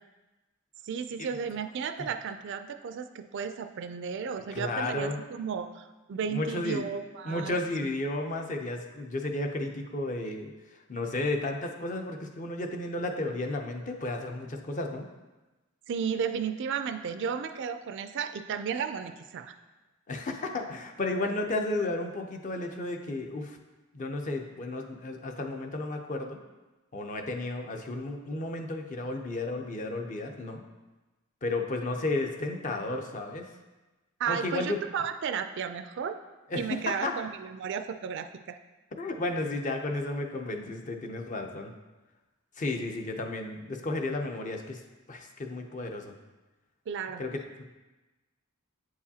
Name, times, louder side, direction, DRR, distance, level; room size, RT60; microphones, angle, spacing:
voice 1, 0.8-7.6 15.9-19.5 34.2-36.1 36.6-38.6 46.9-47.2, right 7 dB, 60° right, 8 dB, 0.4 m, -34 dB
voice 2, 4.5-5.2 6.3-6.9 7.2-10.5 10.9-15.1 20.1-23.6 23.9-26.4 26.9-30.6 31.4-33.5 34.3-34.8 36.5-37.1 39.0-41.7 42.6-44.8 45.1-46.1 47.2-47.6, left 2 dB, 35° left, 4 dB, 0.6 m, -33 dB
8.4 x 4.8 x 2.8 m, 1.1 s
head